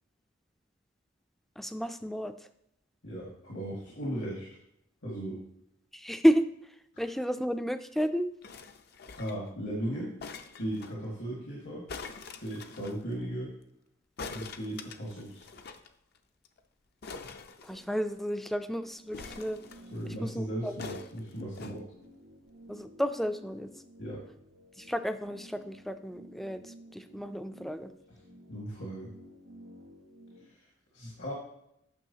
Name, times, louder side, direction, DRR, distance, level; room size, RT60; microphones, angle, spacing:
voice 1, 1.6-2.3 5.9-6.4 7.0-8.3 17.6-19.6 20.0-20.7 22.7-23.7 24.8-27.9, equal, ahead, 10 dB, 0.3 m, -31 dB
voice 2, 3.0-4.5 5.0-5.4 9.2-10.1 10.6-11.9 12.4-13.5 14.3-15.5 19.9-21.9 24.0-24.2 28.5-29.1 30.9-31.3, right 1 dB, 75° left, -4 dB, 1.8 m, -36 dB
sound 1, 8.4-9.5 10.2-10.9 11.9-13.0 14.2-15.9 16.1-16.2 16.4-16.6 17.0-18.2 19.1-20.1 20.8-21.8 22.5-22.6, left 4 dB, 55° left, 0.5 m, -44 dB
sound 2, 18.0-30.4, equal, 90° right, 1.5 m, -54 dB
9.2 x 6.2 x 2.8 m, 0.77 s
head